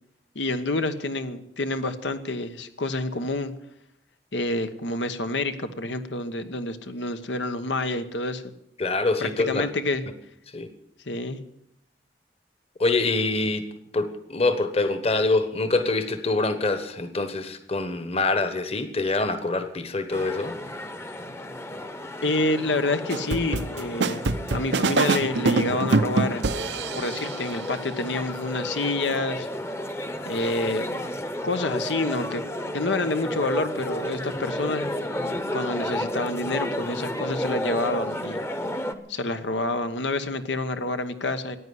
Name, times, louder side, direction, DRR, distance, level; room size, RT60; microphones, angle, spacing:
voice 1, 0.3-3.5 4.3-8.5 9.2-10.0 11.1-11.4 22.2-24.2 24.5-26.4 27.0-29.5 30.2-31.2 31.4-38.4 39.1-41.6, left 2 dB, 85° left, 9 dB, 1.2 m, -28 dB
voice 2, 8.8-9.7 10.5-10.7 12.8-13.7 13.9-20.6, left 3 dB, 35° left, 10 dB, 1.2 m, -25 dB
sound 1, 20.1-38.9, left 1 dB, 15° left, 0.9 m, -32 dB
sound 2, 23.1-27.4, right 3 dB, 80° right, 0.7 m, -24 dB
15.5 x 9.6 x 9.5 m, 0.76 s
head